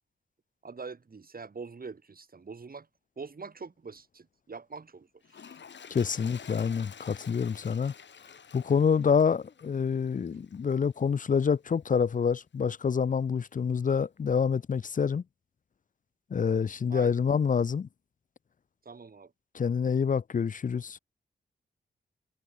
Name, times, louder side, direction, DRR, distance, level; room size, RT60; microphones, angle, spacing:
voice 1, 0.6-2.9 3.2-5.5 10.3-10.4 16.9-17.1 18.9-19.3, right 4 dB, 45° right, 3.7 m, -44 dB
Toilet flush, 5.2-10.7 11.4-11.5, left 7 dB, 65° left, 2.3 m, -49 dB
voice 2, 5.9-7.9 8.5-15.2 16.3-17.9 19.5-21.0, left 6 dB, 40° left, 0.6 m, -27 dB
cardioid pair, 50°, 20 cm